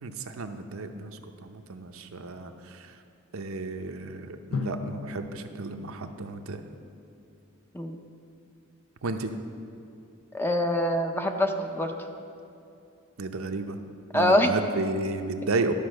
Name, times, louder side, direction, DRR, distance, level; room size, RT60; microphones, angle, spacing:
voice 1, 0.0-3.0 3.3-6.6 9.0-9.3 13.2-13.8 14.1-15.7, right 3 dB, 70° right, 6 dB, 0.6 m, -33 dB
Drum, 4.5-7.2, left 4 dB, 70° left, 0.6 m, -38 dB
voice 2, 10.3-11.9 14.1-14.5, left 1 dB, 10° left, 4 dB, 0.6 m, -24 dB
12.0 x 5.2 x 6.4 m, 2.7 s
head